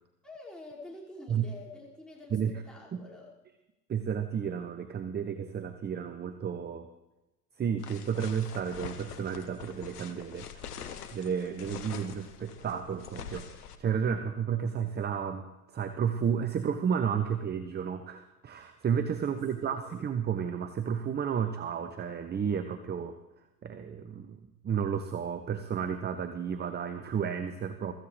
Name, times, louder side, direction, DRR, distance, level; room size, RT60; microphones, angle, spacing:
voice 1, 0.2-3.3 19.2-20.1, left 2 dB, ahead, -6 dB, 5.4 m, -48 dB
voice 2, 3.9-6.9 7.6-10.5 11.1-15.5 15.7-23.1 23.6-27.9, right 7 dB, 20° right, 9 dB, 0.8 m, -32 dB
sound 1, 7.8-13.8, left 7 dB, 85° left, 1.2 m, -44 dB
23.0 x 14.5 x 3.4 m, 1.0 s
hypercardioid pair, 80°, 45 cm